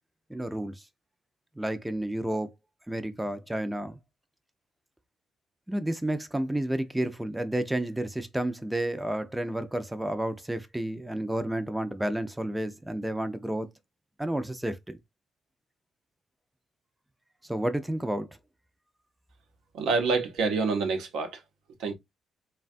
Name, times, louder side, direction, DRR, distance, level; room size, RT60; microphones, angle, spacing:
voice 1, 0.3-0.8 1.6-2.5 2.9-4.0 5.7-13.7 14.2-15.0 17.4-18.4, right 1 dB, 5° right, 0.4 m, -31 dB
voice 2, 19.7-21.4 21.8-21.9, right 4 dB, 85° right, 0.6 m, -27 dB
3.3 x 2.2 x 2.5 m
cardioid pair, 90°, 0 cm